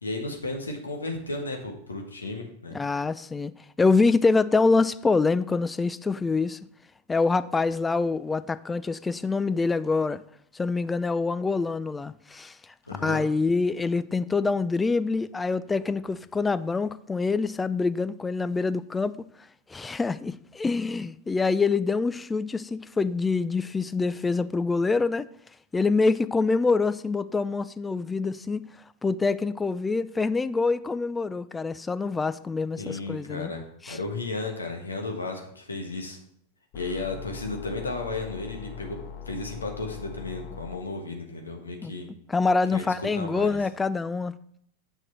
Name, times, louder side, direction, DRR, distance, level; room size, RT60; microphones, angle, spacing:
voice 1, 0.0-2.8 12.9-13.2 32.8-36.2 36.7-39.0 39.3-42.1 42.7-43.6, left 3 dB, 75° left, 1.4 m, -34 dB
voice 2, 2.7-3.5 3.8-6.6 7.1-10.2 10.5-19.1 19.7-25.3 25.7-28.6 29.0-33.5 33.8-34.0 41.8-41.9 42.3-44.3, left 4 dB, 10° left, 0.3 m, -25 dB
sound 1, 36.7-40.8, left 7 dB, 45° left, 0.7 m, -41 dB
7.6 x 6.2 x 4.2 m
figure-of-eight pair, 90°, 0 cm